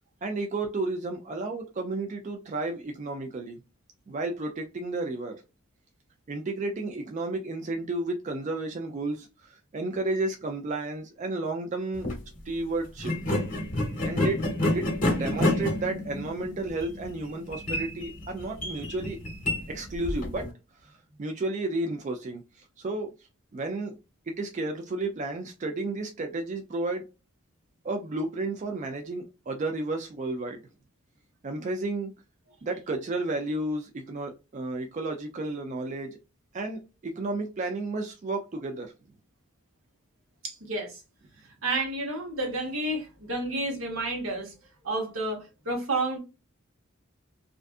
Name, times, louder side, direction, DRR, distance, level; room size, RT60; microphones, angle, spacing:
voice 1, 0.2-3.6 4.1-5.4 6.3-12.1 12.5-13.1 14.0-14.4 14.7-19.2 19.7-20.4 20.8-23.1 23.5-23.9 24.3-27.0 27.8-30.6 31.4-32.1 32.6-36.2 36.5-38.9, right 2 dB, 35° right, 0.4 m, -32 dB
sound 1, 11.9-12.2 13.0-20.5, left 1 dB, 40° left, 0.9 m, -29 dB
voice 2, 40.4-41.0 41.6-44.5 44.8-46.2, right 2 dB, 80° right, 1.1 m, -30 dB
2.5 x 2.3 x 2.4 m
head